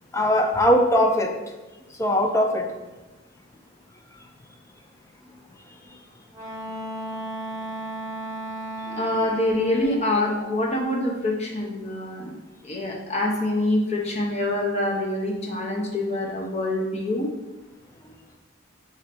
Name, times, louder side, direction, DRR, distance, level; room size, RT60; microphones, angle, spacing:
voice 1, 0.1-1.3 2.0-2.7 8.9-9.3, equal, 15° left, 3 dB, 0.4 m, -21 dB
Wind instrument woodwind instrument, 6.3-10.0, right 1 dB, 15° right, 0.9 m, -34 dB
voice 2, 9.0-12.4 12.6-17.3, left 1 dB, 30° left, -1 dB, 0.8 m, -25 dB
5.0 x 2.6 x 4.2 m, 1.1 s
head